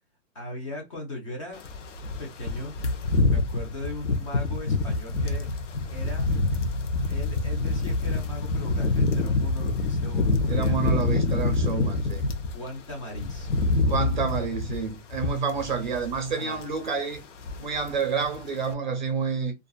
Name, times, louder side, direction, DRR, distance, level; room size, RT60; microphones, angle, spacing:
voice 1, 0.3-1.7 2.2-2.7 3.3-5.5 5.9-6.3 7.1-10.9 12.4-13.5 16.4-16.6, left 1 dB, 25° left, 0.6 m, -38 dB
sound 1, 1.6-12.5 12.9-16.3 16.6-16.8 17.1-18.0 18.2-18.4, left 3 dB, 70° left, 0.8 m, -26 dB
voice 2, 10.5-12.2 13.9-17.2 17.6-19.5, right 5 dB, 40° right, 0.5 m, -28 dB
2.4 x 2.4 x 2.2 m
hypercardioid pair, 175°, 39 cm